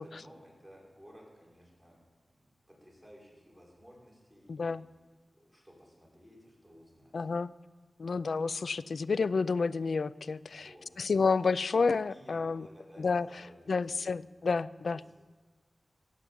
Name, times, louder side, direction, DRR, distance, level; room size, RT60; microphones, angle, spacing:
voice 1, 0.0-2.0 2.3-4.8 5.3-7.3 10.5-10.9 12.1-14.2, equal, ahead, -4 dB, 5.3 m, -56 dB
voice 2, 4.5-4.9 7.1-7.5 8.0-10.7 11.0-12.7 13.0-13.3 13.7-15.0, left 4 dB, 80° left, 18 dB, 0.4 m, -30 dB
16.5 x 7.2 x 8.0 m, 1.4 s
wide cardioid pair, 85°, 0 cm